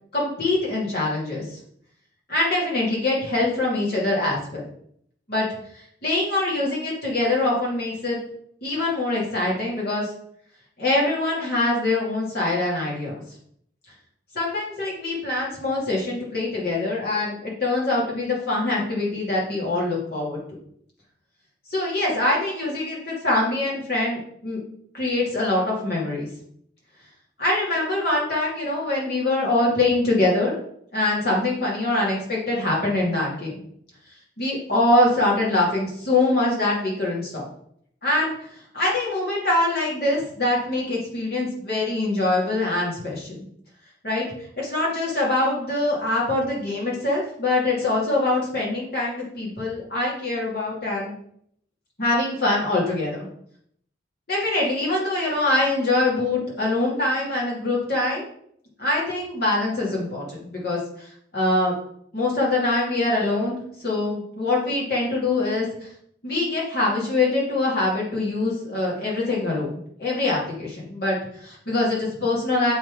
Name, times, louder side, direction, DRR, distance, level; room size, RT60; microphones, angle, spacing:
voice 1, 0.1-1.4 2.3-4.7 5.3-5.5 6.0-8.2 8.6-10.1 10.8-13.2 14.3-20.4 21.7-24.6 24.9-26.3 27.4-30.6 30.9-33.5 34.4-37.5 38.0-38.3 38.7-43.4 44.0-44.2 44.6-51.2 52.0-53.3 54.3-58.2 58.8-61.7 62.1-65.9 66.2-69.7 70.0-72.7, left 2 dB, 50° left, -4 dB, 2.7 m, -24 dB
7.6 x 3.7 x 4.9 m, 0.68 s
head